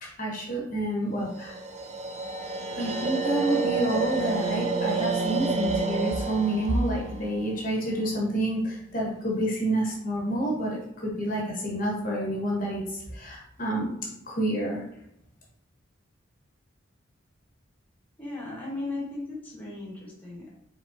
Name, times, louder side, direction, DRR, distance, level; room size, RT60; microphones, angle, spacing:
voice 1, 0.0-1.5 2.8-13.9 14.3-14.8, right 1 dB, 40° left, -3 dB, 1.0 m, -28 dB
sound 1, 1.3-8.4, right 4 dB, 35° right, 0.4 m, -30 dB
voice 2, 18.2-20.5, left 2 dB, 10° left, -4 dB, 1.1 m, -36 dB
5.0 x 3.7 x 2.5 m, 0.76 s
head